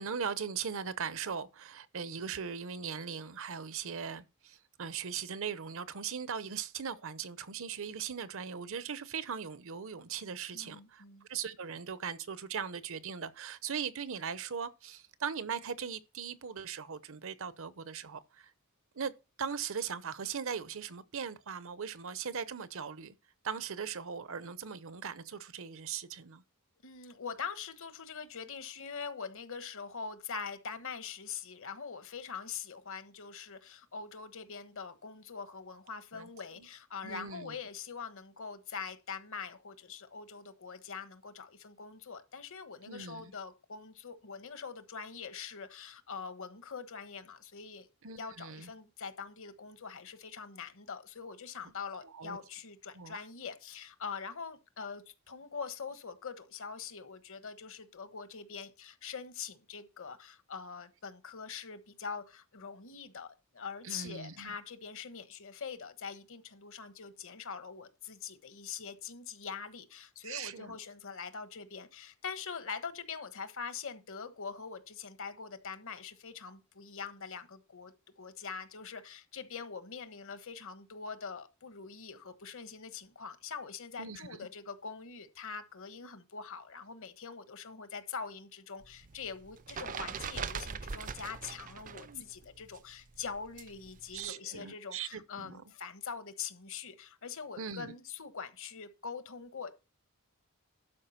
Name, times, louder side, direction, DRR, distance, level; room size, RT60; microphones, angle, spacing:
voice 1, 0.0-11.0 11.3-18.5 18.9-23.1 23.4-26.4 36.1-36.3 36.6-36.7 37.0-37.6 42.9-43.3 48.0-48.7 52.0-52.4 52.9-53.2 63.8-64.5 70.2-70.8 84.0-84.3 92.0-92.2 94.1-95.6 97.6-97.9, right 6 dB, 65° right, 0.8 m, -39 dB
voice 2, 10.5-11.3 26.8-47.9 48.2-99.7, left 6 dB, 65° left, 1.3 m, -43 dB
sound 1, 88.8-92.2 92.4-94.3, right 6 dB, 35° right, 0.5 m, -41 dB
12.0 x 4.9 x 5.7 m
head